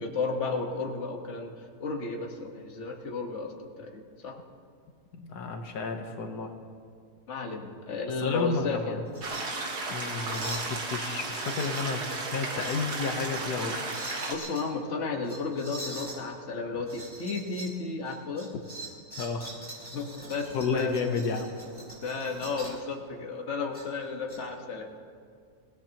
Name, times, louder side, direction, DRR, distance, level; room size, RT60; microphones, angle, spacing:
voice 1, 0.0-1.5 1.8-4.4 7.3-9.0 14.3-18.5 19.9-21.1 21.8-24.9, left 4 dB, 50° left, 1 dB, 1.7 m, -33 dB
voice 2, 5.1-6.5 8.2-9.0 9.9-13.8 19.2-19.5 20.5-21.5, left 4 dB, 80° left, 4 dB, 1.6 m, -31 dB
sound 1, 9.0-9.4 9.8-9.9 10.3-10.7 11.1-12.1 12.5-13.5 13.9-14.6 15.2-16.2 16.8-17.7 18.0-22.8 23.7-24.4, right 1 dB, 5° right, 5.7 m, -43 dB
sound 2, 9.2-14.3, right 3 dB, 90° right, 2.3 m, -34 dB
28.5 x 17.0 x 3.0 m, 2.1 s
omnidirectional pair, 1.7 m